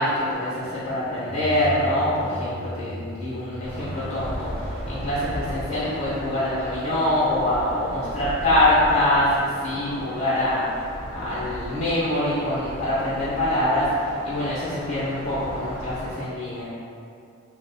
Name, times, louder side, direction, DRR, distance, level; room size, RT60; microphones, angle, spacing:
voice 1, 0.0-10.6 11.1-16.7, left 1 dB, 40° left, -10 dB, 0.7 m, -24 dB
sound 1, 1.2-7.7, equal, 80° right, 0.4 m, -38 dB
sound 2, 3.6-16.1, equal, 5° right, 0.7 m, -36 dB
2.9 x 2.1 x 3.9 m, 2.5 s
head